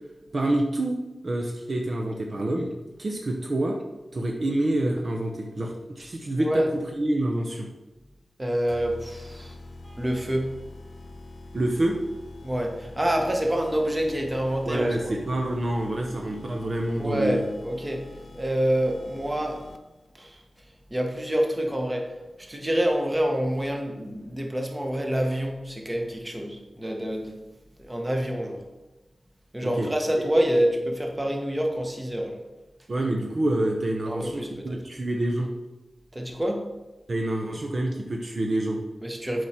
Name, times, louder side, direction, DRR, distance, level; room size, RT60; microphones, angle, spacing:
voice 1, 0.3-2.7 3.0-3.8 4.1-7.7 11.5-12.0 14.7-17.4 29.6-29.9 30.2-30.3 32.9-35.5 37.1-38.8, right 1 dB, 50° right, 1 dB, 0.8 m, -27 dB
voice 2, 6.4-6.7 8.4-9.6 9.8-10.5 12.4-15.1 17.0-18.0 18.3-19.6 20.1-20.4 20.9-27.4 27.8-28.6 29.5-32.4 34.1-34.8 36.1-36.6 39.0-39.5, equal, 20° right, 2 dB, 1.2 m, -27 dB
sound 1, 8.7-20.1, left 2 dB, 70° left, 0.5 m, -45 dB
7.8 x 5.0 x 4.3 m, 1.1 s
wide cardioid pair, 80°, 0 cm